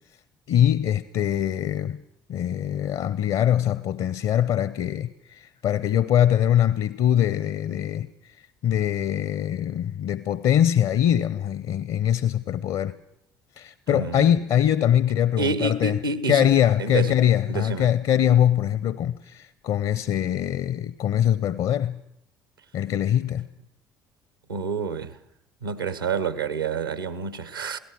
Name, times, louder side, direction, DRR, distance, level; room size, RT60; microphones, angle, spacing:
voice 1, 0.5-2.0 2.3-8.4 8.6-12.9 13.6-16.0 16.3-22.0 22.7-23.5, left 10 dB, 50° left, 0.8 m, -23 dB
voice 2, 13.9-14.4 15.4-16.5 16.8-17.2 17.5-17.9 24.5-25.2 25.6-27.8, right 4 dB, 85° right, 1.1 m, -28 dB
28.0 x 17.5 x 6.3 m
figure-of-eight pair, 55°, 11 cm